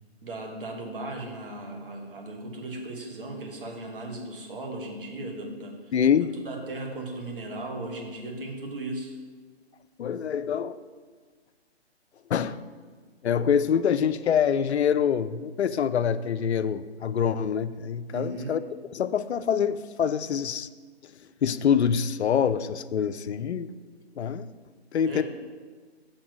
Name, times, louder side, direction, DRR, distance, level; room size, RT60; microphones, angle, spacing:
voice 1, 0.2-5.9 6.4-9.1 18.1-18.5 25.0-25.2, right 2 dB, 55° right, 1 dB, 1.5 m, -36 dB
voice 2, 5.9-6.3 10.0-10.8 12.3-12.6 13.2-18.6 18.9-20.7 21.4-23.7 24.2-24.5 24.9-25.2, left 8 dB, 75° left, 14 dB, 0.5 m, -25 dB
6.5 x 4.0 x 6.2 m, 1.5 s
figure-of-eight pair, 145°, 33 cm